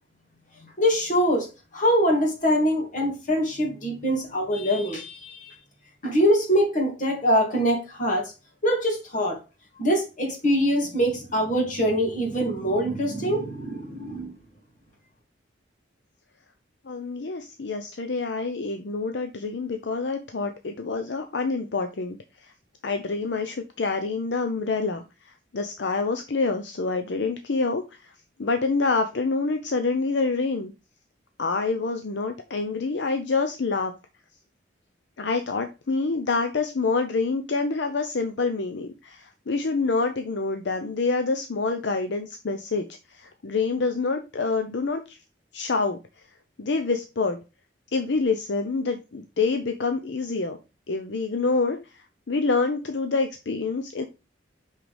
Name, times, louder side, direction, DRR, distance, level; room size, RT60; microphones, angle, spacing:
voice 1, 0.6-5.5 6.0-8.3 8.6-9.4 9.8-14.3, equal, 45° left, 2.5 m, -24 dB
voice 2, 16.8-22.5 22.8-28.1 28.4-30.7 31.4-33.9 35.2-45.2 45.5-46.0 46.6-47.4 47.9-50.6 50.9-54.0, left 4 dB, 70° left, 0.7 m, -27 dB
6.1 x 5.7 x 3.4 m
head